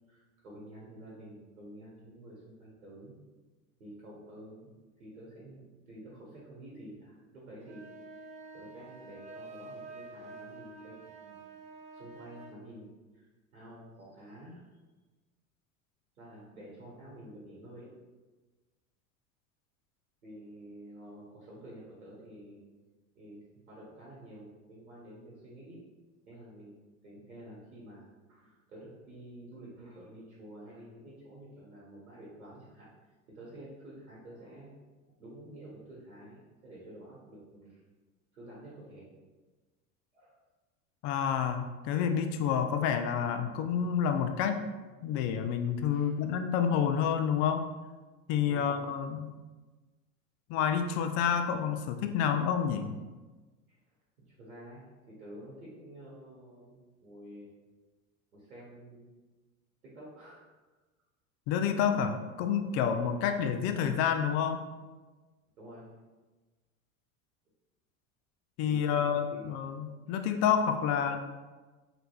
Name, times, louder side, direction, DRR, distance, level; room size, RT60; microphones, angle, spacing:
voice 1, 0.1-3.1 3.8-4.7 5.0-7.8 8.1-8.3 8.5-11.4 11.9-13.3 13.5-14.6 16.2-17.9 20.2-22.6 23.1-25.8 26.3-32.9 33.3-34.7 35.1-37.8 38.3-39.1 40.1-40.3 45.9-46.2 48.5-48.7 53.7-53.8 54.3-57.5 58.3-59.1 59.8-60.4 62.9-63.1 65.6-66.1 68.6-69.5, right 1 dB, 85° right, -6 dB, 1.2 m, -50 dB
sound 1, 7.6-12.6, right 3 dB, 15° right, 0.7 m, -48 dB
voice 2, 41.0-44.6 45.0-47.7 48.3-49.3 50.5-52.9 61.5-64.6 68.6-71.2, left 7 dB, 40° left, 7 dB, 0.4 m, -29 dB
4.0 x 3.2 x 2.2 m, 1.3 s
hypercardioid pair, 85°, 42 cm